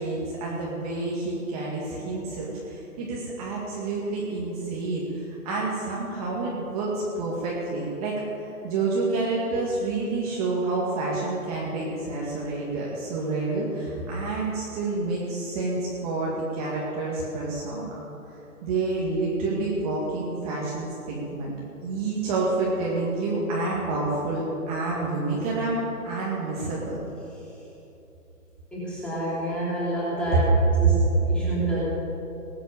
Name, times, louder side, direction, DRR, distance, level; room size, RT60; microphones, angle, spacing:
voice 1, 0.0-8.2 8.6-17.9 18.6-21.5 21.8-27.0, right 3 dB, 25° right, -5 dB, 2.1 m, -28 dB
voice 2, 28.7-30.5 30.8-31.8, right 1 dB, ahead, -9 dB, 3.3 m, -29 dB
19.5 x 8.3 x 7.0 m, 2.9 s
hypercardioid pair, 155°, 44 cm